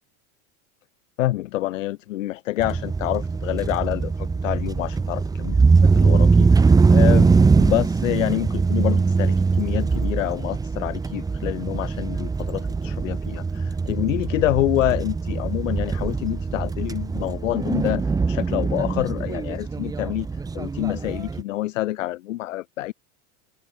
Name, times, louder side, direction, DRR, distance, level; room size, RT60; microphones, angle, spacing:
voice 1, 1.2-20.3 20.5-22.9, left 16 dB, 85° left, 5.0 m, -27 dB
sound 1, 2.6-21.4, right 4 dB, 10° right, 1.0 m, -21 dB
open air
supercardioid pair, 145°, 37 cm